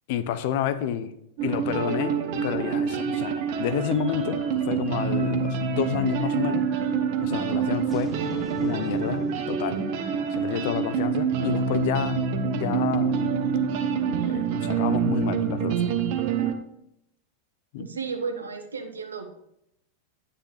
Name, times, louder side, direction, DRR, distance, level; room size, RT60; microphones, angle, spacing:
voice 1, 0.1-1.1 1.4-6.7 7.2-8.1 8.6-9.9 10.3-12.2 12.5-16.0 17.7-17.8, left 10 dB, 50° left, 12 dB, 0.6 m, -30 dB
sound 1, 1.4-16.5, right 6 dB, 45° right, 1.0 m, -26 dB
sound 2, 3.9-12.4, right 1 dB, 5° right, 1.4 m, -44 dB
voice 2, 17.8-19.3, right 5 dB, 75° right, 6 dB, 1.2 m, -33 dB
9.7 x 8.3 x 3.4 m, 0.79 s
figure-of-eight pair, 90°, 0 cm